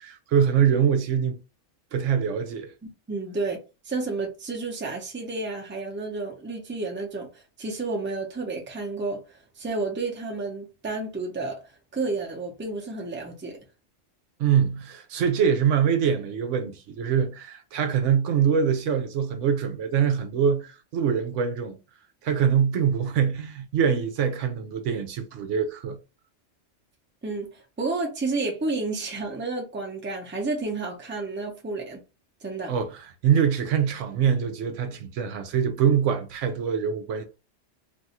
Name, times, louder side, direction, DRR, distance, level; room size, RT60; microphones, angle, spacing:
voice 1, 0.0-1.4 1.9-2.7 14.4-21.8 22.2-26.0 32.7-37.3, right 7 dB, 75° right, 0.9 m, -24 dB
voice 2, 2.8-3.6 3.8-7.3 7.6-9.2 9.6-11.6 11.9-13.6 27.2-27.5 27.8-32.0 32.4-32.7, right 3 dB, 10° right, 0.6 m, -31 dB
2.7 x 2.3 x 4.1 m
omnidirectional pair, 1.3 m